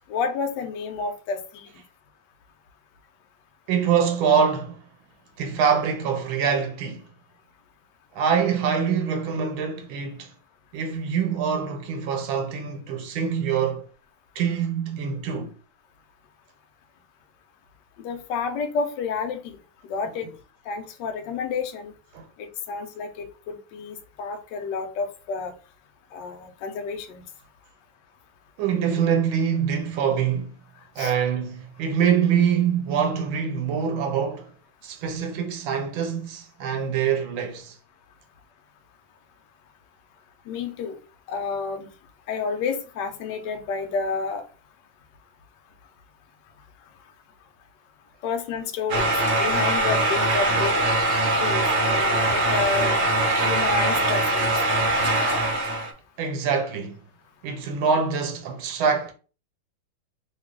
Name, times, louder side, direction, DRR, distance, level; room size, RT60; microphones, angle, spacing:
voice 1, 0.1-1.7 18.0-19.6 19.8-20.3 20.7-21.9 22.4-25.5 26.1-27.2 31.0-31.1 40.5-41.0 41.3-41.9 42.3-44.4 48.2-50.8 51.3-53.2 53.5-54.5, left 5 dB, 70° left, 1.2 m, -30 dB
voice 2, 3.7-4.8 5.4-7.0 8.1-10.3 10.7-13.8 14.4-15.5 22.1-22.2 28.6-30.5 31.0-34.5 34.8-37.7 56.2-57.0 57.4-59.1, right 7 dB, 80° right, 1.5 m, -24 dB
sound 1, 48.9-55.9, right 1 dB, 60° right, 0.7 m, -22 dB
3.2 x 2.3 x 3.6 m
omnidirectional pair, 2.2 m